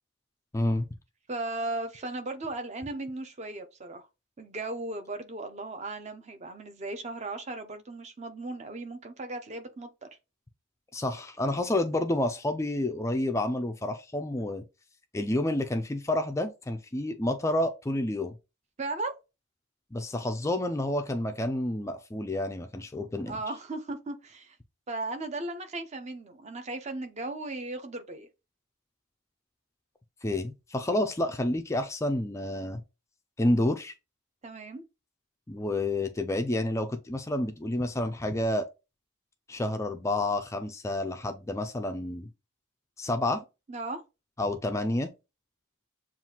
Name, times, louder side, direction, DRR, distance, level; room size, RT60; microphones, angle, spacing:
voice 1, 0.5-0.9 10.9-14.6 15.1-18.3 19.9-23.3 30.2-32.8 33.4-33.9 35.5-38.7 39.5-42.3 43.0-43.4 44.4-45.1, left 1 dB, 15° left, 0.3 m, -29 dB
voice 2, 1.3-4.1 4.4-9.9 18.8-19.1 23.3-24.6 24.9-28.3 34.4-34.8 43.7-44.0, right 2 dB, 30° right, 0.6 m, -36 dB
7.3 x 2.4 x 2.8 m
head